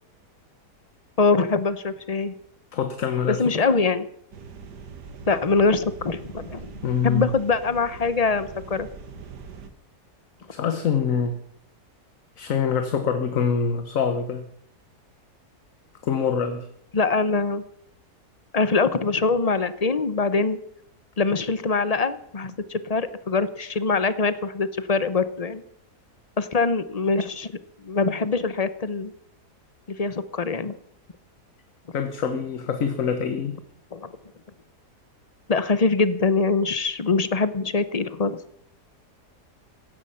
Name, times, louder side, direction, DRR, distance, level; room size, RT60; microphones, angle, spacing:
voice 1, 1.2-2.3 3.3-4.1 5.3-6.7 7.0-8.9 16.9-17.6 18.5-20.6 21.2-25.6 26.4-27.5 27.8-29.1 29.9-30.8 33.9-34.1 35.5-38.4, left 4 dB, 30° left, 14 dB, 0.7 m, -23 dB
voice 2, 2.7-3.4 6.8-7.3 10.5-11.4 12.4-14.4 16.0-16.7 31.9-33.6, left 7 dB, 55° left, 8 dB, 1.5 m, -25 dB
sound 1, 4.3-9.7, right 5 dB, 90° right, 2.1 m, -42 dB
16.5 x 14.0 x 5.7 m, 0.68 s
omnidirectional pair, 1.7 m